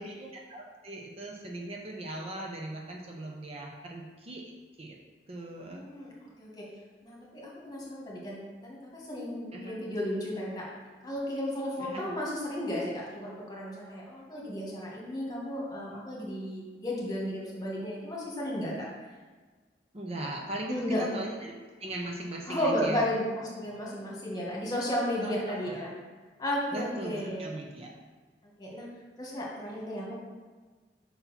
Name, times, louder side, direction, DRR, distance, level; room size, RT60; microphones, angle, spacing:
voice 1, 0.0-4.4 4.8-5.0 5.3-5.8 9.5-9.8 11.8-12.2 19.9-23.1 25.2-25.8 26.7-27.9, right 1 dB, 35° right, 0 dB, 0.7 m, -39 dB
voice 2, 5.7-6.1 6.4-6.6 7.0-10.7 11.0-18.8 20.7-21.2 22.5-25.9 26.4-27.5 28.6-28.9 29.2-30.2, left 1 dB, 25° left, -4 dB, 1.6 m, -33 dB
5.6 x 4.2 x 5.7 m, 1.4 s
head